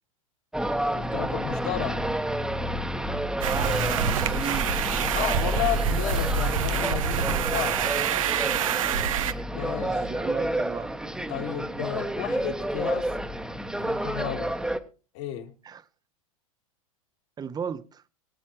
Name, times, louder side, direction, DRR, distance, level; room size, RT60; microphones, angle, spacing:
sound 1, 0.5-14.8, equal, 5° right, 1.2 m, -30 dB
voice 1, 0.9-2.0 5.1-7.8 9.5-10.0 11.3-13.1 13.8-14.5 15.1-15.5, left 11 dB, 60° left, 2.8 m, -32 dB
voice 2, 3.4-4.7 9.8-10.9 15.6-15.8 17.4-18.0, right 7 dB, 20° right, 1.0 m, -35 dB
sound 2, 3.4-9.3, right 8 dB, 70° right, 1.0 m, -27 dB
23.5 x 8.6 x 3.0 m
hypercardioid pair, 95°, 18 cm